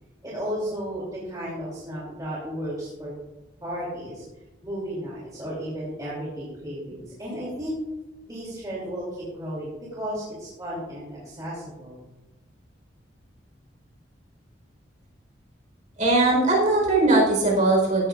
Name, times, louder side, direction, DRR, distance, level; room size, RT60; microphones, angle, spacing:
voice 1, 0.2-3.1 3.6-4.2 4.6-7.7 8.2-12.0, equal, 20° right, -7 dB, 2.9 m, -34 dB
voice 2, 16.0-18.1, right 2 dB, 40° right, -1 dB, 4.3 m, -20 dB
15.0 x 11.0 x 2.5 m, 1.0 s
head